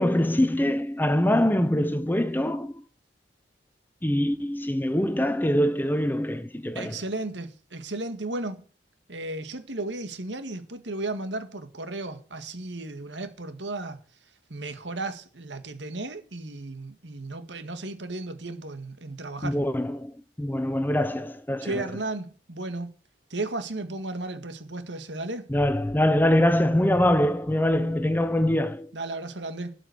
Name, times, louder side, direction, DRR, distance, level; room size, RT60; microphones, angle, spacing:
voice 1, 0.0-2.7 4.0-7.0 19.4-21.8 25.5-28.9, left 1 dB, 10° left, 0.8 m, -24 dB
voice 2, 6.8-8.6 9.1-14.0 14.5-19.6 21.6-22.9 23.3-25.5 28.9-29.7, right 2 dB, 80° right, 1.9 m, -34 dB
12.5 x 6.3 x 7.9 m
head